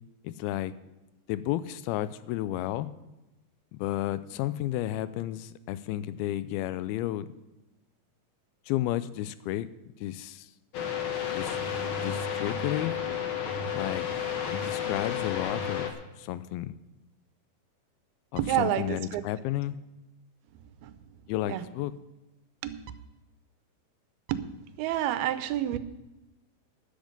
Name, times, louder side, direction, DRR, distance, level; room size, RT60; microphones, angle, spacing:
voice 1, 0.2-0.7 1.3-2.9 3.7-7.3 8.7-9.7 10.0-10.5 11.3-11.6 12.0-13.0 13.7-14.1 14.5-15.9 16.2-16.7 18.3-19.7 21.3-21.9, left 14 dB, 85° left, 15 dB, 2.5 m, -32 dB
sound 1, 10.7-15.9, left 7 dB, 70° left, 1.2 m, -32 dB
voice 2, 18.4-19.2 20.8-20.9 21.2-21.6 22.6-22.8 24.3-24.5 24.8-25.8, right 12 dB, 85° right, 13 dB, 2.7 m, -29 dB
13.0 x 10.5 x 5.3 m, 1.0 s
omnidirectional pair, 4.3 m